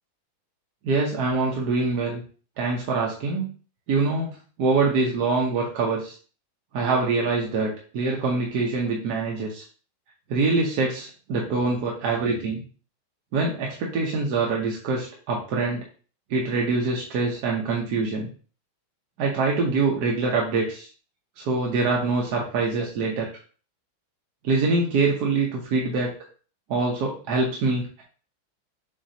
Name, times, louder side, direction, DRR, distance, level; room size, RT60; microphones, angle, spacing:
voice 1, 0.8-2.2 2.6-3.5 3.9-4.3 4.6-6.1 6.7-9.6 10.3-12.6 13.3-15.8 16.3-18.3 19.2-20.9 21.4-23.3 24.4-26.1 26.7-28.0, right 3 dB, 60° right, -2 dB, 1.2 m, -24 dB
7.1 x 2.7 x 2.7 m, 0.39 s
omnidirectional pair, 2.2 m